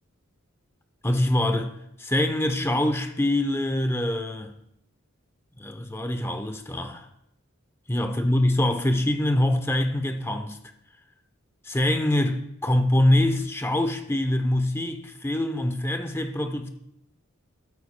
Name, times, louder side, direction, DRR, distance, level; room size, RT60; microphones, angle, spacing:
voice 1, 1.0-1.7 2.0-4.5 5.6-7.1 7.9-10.6 11.7-16.7, left 1 dB, 10° left, 0.7 m, -24 dB
13.0 x 12.0 x 2.2 m
head